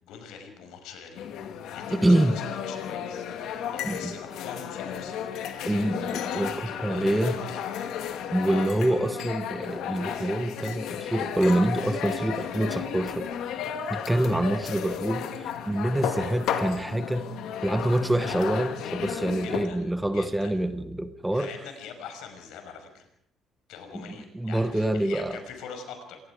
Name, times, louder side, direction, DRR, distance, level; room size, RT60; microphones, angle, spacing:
voice 1, 0.0-5.9 6.6-7.9 8.4-8.9 19.4-19.9 20.1-20.6 21.3-23.1 23.7-26.2, left 6 dB, 90° left, 5.8 m, -44 dB
sound 1, 1.2-19.7, left 8 dB, 70° left, 2.2 m, -33 dB
voice 2, 1.9-2.4 3.8-4.1 5.6-7.4 8.3-13.6 13.9-17.3 17.6-21.5 24.3-25.4, right 1 dB, 5° right, 1.0 m, -26 dB
27.0 x 20.0 x 5.0 m
cardioid pair, 175°, 0 cm